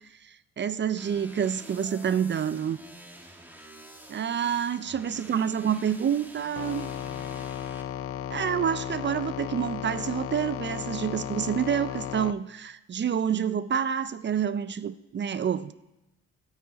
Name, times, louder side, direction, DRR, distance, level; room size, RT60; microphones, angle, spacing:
voice 1, 0.2-2.8 4.1-6.9 8.3-15.7, right 8 dB, 40° right, 15 dB, 0.5 m, -28 dB
sound 1, 1.0-7.8, right 1 dB, 5° right, 1.5 m, -48 dB
sound 2, 6.6-12.3, left 10 dB, 50° left, 0.6 m, -35 dB
18.0 x 8.9 x 4.1 m, 0.95 s
cardioid pair, 90°, 30 cm